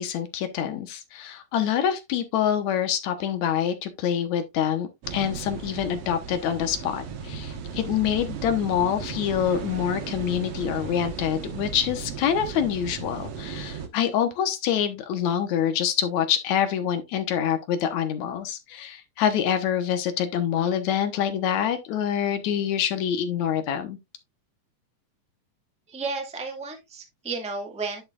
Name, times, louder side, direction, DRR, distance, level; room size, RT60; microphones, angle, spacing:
voice 1, 0.0-24.0, left 9 dB, 65° left, 2.2 m, -26 dB
sound 1, 5.0-13.9, right 6 dB, 60° right, 2.0 m, -36 dB
voice 2, 25.9-28.1, right 4 dB, 5° right, 0.6 m, -33 dB
10.5 x 6.2 x 2.4 m
omnidirectional pair, 3.8 m